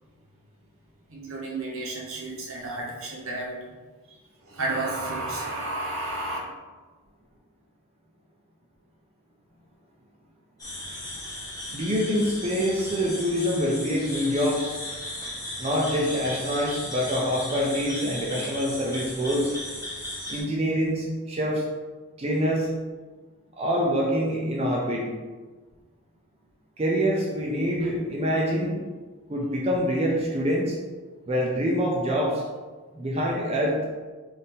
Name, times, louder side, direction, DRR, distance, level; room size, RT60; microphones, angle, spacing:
voice 1, 1.1-3.7 4.4-6.4, right 2 dB, 70° right, -3 dB, 1.0 m, -32 dB
sound 1, 10.6-20.4, left 1 dB, 15° left, 0.9 m, -36 dB
voice 2, 11.7-14.7 15.6-19.5 20.3-21.6 22.2-22.7 23.6-25.1 26.8-28.8 29.3-30.8 31.3-32.4 32.9-33.8, equal, 30° right, -2 dB, 0.5 m, -25 dB
4.1 x 2.6 x 3.7 m, 1.3 s
head